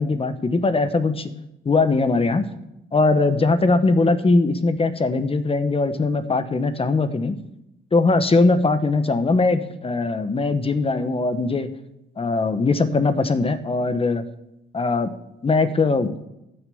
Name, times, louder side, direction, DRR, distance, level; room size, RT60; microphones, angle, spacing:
voice 1, 0.0-1.3 1.6-2.4 2.9-7.3 7.9-11.7 12.2-14.2 14.7-15.1 15.4-16.1, left 3 dB, 30° left, 10 dB, 1.2 m, -20 dB
14.5 x 6.3 x 7.1 m, 0.86 s
cardioid pair, 90°, 20 cm